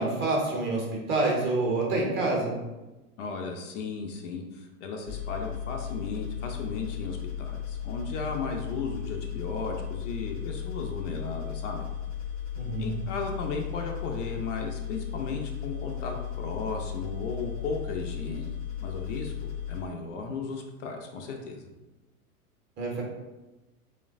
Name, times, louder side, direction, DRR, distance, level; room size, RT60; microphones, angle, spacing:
voice 1, 0.0-2.6 12.5-12.9 22.8-23.0, right 2 dB, 25° right, -2 dB, 0.6 m, -27 dB
voice 2, 3.2-11.9 12.8-21.6, left 4 dB, 55° left, 2 dB, 0.5 m, -35 dB
sound 1, 5.1-19.8, left 9 dB, 80° left, 0.8 m, -35 dB
3.1 x 2.1 x 2.4 m, 1.1 s
hypercardioid pair, 110°, 45 cm